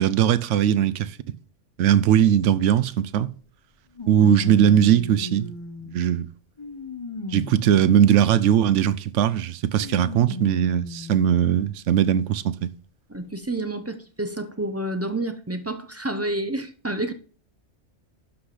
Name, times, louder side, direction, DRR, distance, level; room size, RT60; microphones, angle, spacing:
voice 1, 0.0-1.4 1.8-3.3 4.1-5.5 5.9-6.3 7.3-12.7, right 9 dB, 85° right, 0.9 m, -20 dB
sound 1, 2.7-2.8 3.9-6.0 6.6-8.6 9.8-11.2 11.9-12.0 13.1-13.2, left 2 dB, 30° left, 0.7 m, -36 dB
voice 2, 13.1-17.1, right 1 dB, 20° right, 0.4 m, -29 dB
11.5 x 4.1 x 4.9 m
omnidirectional pair, 1.2 m